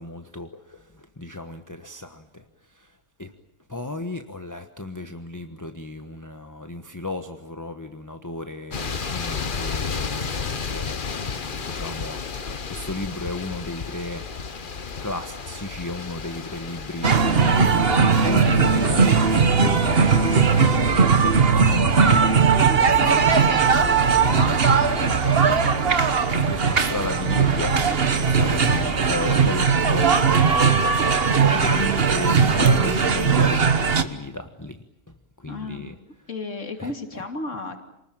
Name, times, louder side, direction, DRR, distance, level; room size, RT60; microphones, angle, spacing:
voice 1, 0.0-3.3 3.7-12.2 12.7-14.3 14.6-14.7 15.0-20.8 21.1-22.3 22.8-23.9 24.4-30.6 31.4-36.0 36.8-36.9, left 2 dB, 15° left, 7 dB, 1.2 m, -35 dB
sound 1, 8.7-21.0, left 5 dB, 40° left, 1.2 m, -33 dB
sound 2, 17.0-34.0, right 5 dB, 50° right, 1.5 m, -19 dB
sound 3, 18.5-29.7, right 1 dB, 65° right, 4.4 m, -33 dB
voice 2, 19.4-19.7 22.7-23.3 35.5-36.0 36.3-37.8, left 2 dB, 65° left, 5 dB, 3.1 m, -34 dB
28.5 x 20.5 x 9.0 m, 0.82 s
omnidirectional pair, 1.4 m